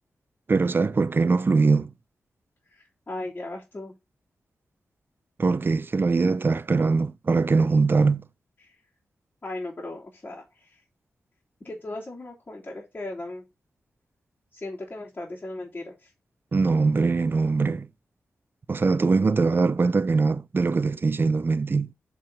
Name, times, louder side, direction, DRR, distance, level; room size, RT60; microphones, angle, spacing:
voice 1, 0.5-1.9 5.4-8.2 16.5-17.9 18.7-21.9, right 4 dB, 45° right, 0.6 m, -22 dB
voice 2, 2.7-3.9 8.6-8.8 9.4-10.8 11.6-13.4 14.5-16.1, left 2 dB, 35° left, 3.2 m, -37 dB
7.4 x 4.7 x 5.2 m
cardioid pair, 55°, 5 cm